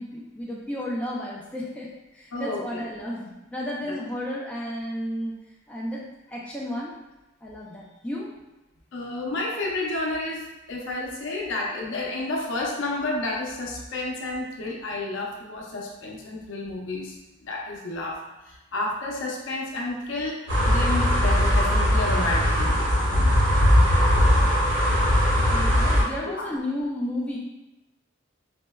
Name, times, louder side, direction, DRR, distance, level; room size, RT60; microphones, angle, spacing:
voice 1, 0.0-5.3 5.7-6.9 7.4-8.3 25.5-27.4, left 1 dB, 5° left, -5 dB, 0.3 m, -32 dB
voice 2, 2.3-2.8 3.9-4.0 8.9-10.4 10.7-17.1 17.4-18.2 18.5-23.4 25.3-25.4 26.2-26.5, left 2 dB, 75° left, -2 dB, 0.6 m, -31 dB
sound 1, 20.5-26.0, equal, 70° right, 1.1 m, -20 dB
4.1 x 2.1 x 2.2 m, 1.0 s
head